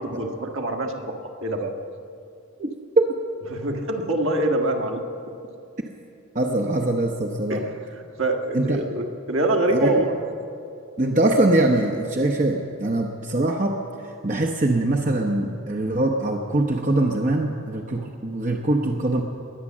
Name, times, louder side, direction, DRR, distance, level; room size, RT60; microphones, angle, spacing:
voice 1, 0.0-1.7 3.5-5.0 7.5-7.8 8.2-10.1, right 1 dB, 65° right, 2 dB, 1.7 m, -25 dB
voice 2, 6.3-7.6 8.5-8.8 9.7-9.9 11.0-13.8 14.2-19.2, right 2 dB, 35° right, 1 dB, 0.9 m, -22 dB
21.5 x 8.9 x 7.4 m, 2.6 s
head